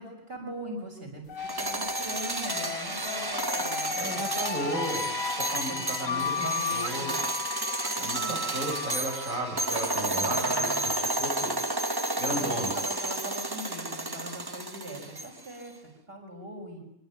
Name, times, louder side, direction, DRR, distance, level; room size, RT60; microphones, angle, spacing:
voice 1, 0.0-4.9 5.7-7.2 8.0-8.4 10.0-10.9 12.3-16.8, right 1 dB, 45° right, 1 dB, 6.9 m, -41 dB
sound 1, 1.3-11.0, left 5 dB, 75° left, 2.6 m, -35 dB
sound 2, 1.4-15.5, right 2 dB, 20° right, 1.1 m, -31 dB
voice 2, 4.0-5.0 5.5-7.1 8.0-11.5 12.2-12.7, right 1 dB, 80° right, 0 dB, 7.7 m, -34 dB
25.5 x 24.5 x 9.4 m, 0.75 s
omnidirectional pair, 1.4 m